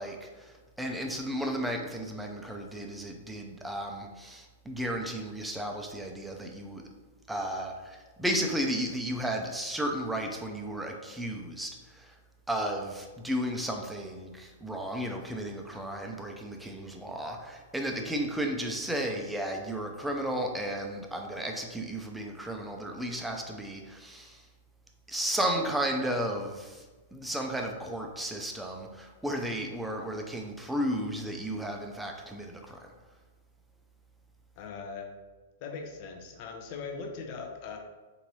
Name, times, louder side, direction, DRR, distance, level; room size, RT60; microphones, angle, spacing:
voice 1, 0.0-6.8 7.3-12.1 12.5-24.4 25.1-26.8 27.1-32.9, right 1 dB, 5° right, 2 dB, 0.5 m, -34 dB
voice 2, 34.6-35.1 35.6-37.8, left 5 dB, 45° left, 3 dB, 0.6 m, -40 dB
3.9 x 2.7 x 3.0 m, 1.3 s
hypercardioid pair, 110°, 0 cm